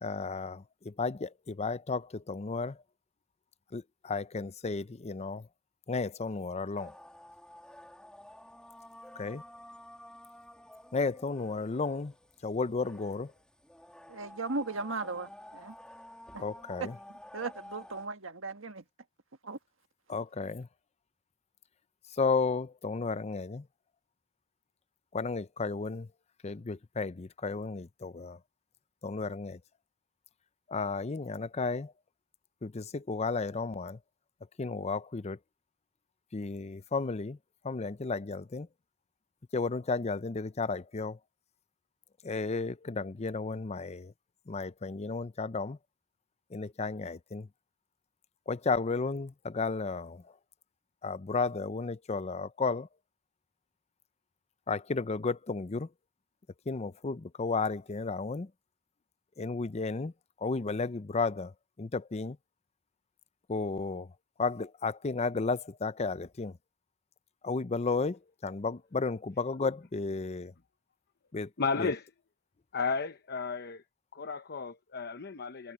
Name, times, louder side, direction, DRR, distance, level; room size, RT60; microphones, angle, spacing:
voice 1, 0.0-2.8 3.7-5.5 5.9-6.9 9.2-9.4 10.9-12.1 12.4-13.3 16.4-17.0 20.1-20.7 22.1-23.7 25.1-26.1 26.4-28.4 29.0-29.6 30.7-31.9 32.6-34.0 34.6-35.4 36.3-37.4 37.6-38.7 39.5-41.2 42.2-44.1 44.5-45.8 46.5-47.5 48.5-50.2 51.0-52.9 54.7-55.9 56.7-58.5 59.4-60.1 60.4-61.5 61.8-62.4 63.5-64.1 64.4-66.6 67.4-70.5 71.3-71.5 71.8-71.9, left 4 dB, 30° left, 0.5 m, -33 dB
sound 1, 6.7-18.1, left 1 dB, 5° left, 1.9 m, -51 dB
voice 2, 14.1-15.7 16.3-16.4 17.3-18.8 19.4-19.6, right 3 dB, 70° right, 1.6 m, -37 dB
voice 3, 71.6-72.1 72.7-73.8 74.1-75.7, left 4 dB, 50° left, 0.9 m, -33 dB
head